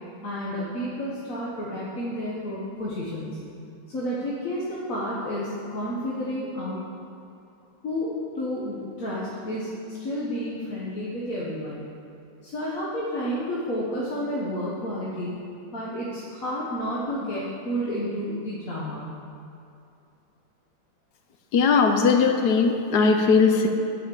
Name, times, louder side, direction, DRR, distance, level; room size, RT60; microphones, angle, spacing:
voice 1, 0.2-3.4 3.9-6.8 7.8-11.8 12.4-15.3 15.7-19.1, equal, 50° left, -7 dB, 1.6 m, -31 dB
voice 2, 21.5-23.7, left 5 dB, 65° left, 5 dB, 1.1 m, -19 dB
10.5 x 5.8 x 7.3 m, 2.6 s
omnidirectional pair, 2.0 m